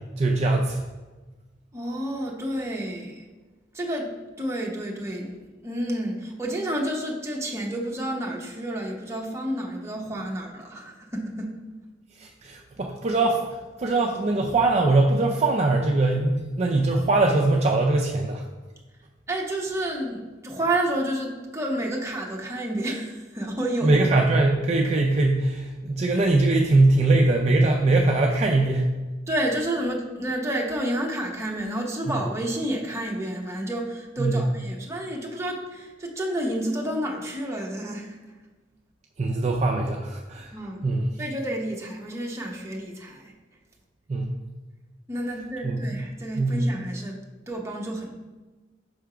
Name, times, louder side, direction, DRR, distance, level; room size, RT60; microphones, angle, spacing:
voice 1, 0.2-0.8 12.2-18.4 23.8-28.9 34.2-34.4 39.2-40.5 40.8-41.1 44.1-44.4 45.6-45.8 46.4-46.5, right 2 dB, 35° right, 1 dB, 0.4 m, -22 dB
voice 2, 1.7-3.3 3.7-11.6 19.3-24.0 29.3-38.2 40.5-40.9 41.2-43.3 45.1-48.1, right 1 dB, 15° right, -1 dB, 0.8 m, -30 dB
5.6 x 3.4 x 4.9 m, 1.2 s
head